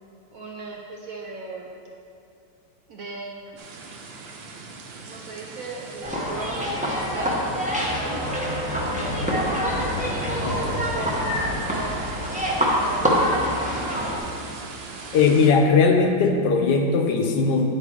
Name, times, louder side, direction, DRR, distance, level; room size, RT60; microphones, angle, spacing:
voice 1, 0.3-1.7 2.9-3.6 5.1-9.6 10.4-12.4 12.7-14.3, right 3 dB, 65° right, -1 dB, 0.9 m, -37 dB
sound 1, 3.6-15.5, right 4 dB, 85° right, 1.5 m, -40 dB
sound 2, 6.0-14.2, equal, 5° right, 0.6 m, -25 dB
sound 3, 8.5-16.5, left 2 dB, 60° left, 1.0 m, -37 dB
voice 2, 15.1-17.7, left 4 dB, 75° left, 3 dB, 1.3 m, -19 dB
9.6 x 4.5 x 4.8 m, 2.6 s
omnidirectional pair, 2.0 m